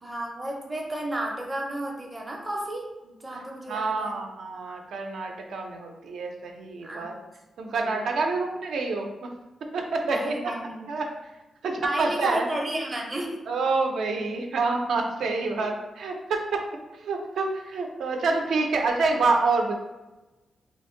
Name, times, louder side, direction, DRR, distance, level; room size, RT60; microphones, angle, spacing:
voice 1, 0.0-4.2 6.8-7.1 7.7-7.9 8.2-8.4 10.1-10.9 11.8-13.4, right 1 dB, 15° right, -1 dB, 0.5 m, -32 dB
voice 2, 3.7-7.2 7.6-9.3 9.7-10.5 10.9-11.1 11.6-12.5 13.5-16.6 16.9-19.7, right 3 dB, 75° right, 2 dB, 0.4 m, -27 dB
2.8 x 2.5 x 3.7 m, 1.1 s
wide cardioid pair, 175°, 0 cm